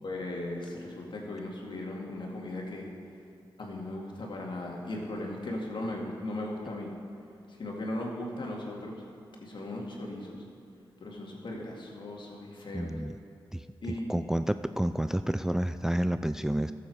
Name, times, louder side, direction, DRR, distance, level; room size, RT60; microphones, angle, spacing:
voice 1, 0.0-2.9 3.6-6.9 7.6-9.0 9.4-10.4 11.0-12.9 13.8-14.1, left 1 dB, 60° left, -1 dB, 2.1 m, -37 dB
voice 2, 12.7-13.1 13.5-13.6 14.1-16.7, right 1 dB, 5° right, 11 dB, 0.3 m, -29 dB
13.5 x 7.3 x 4.7 m, 2.7 s
supercardioid pair, 45°, 9 cm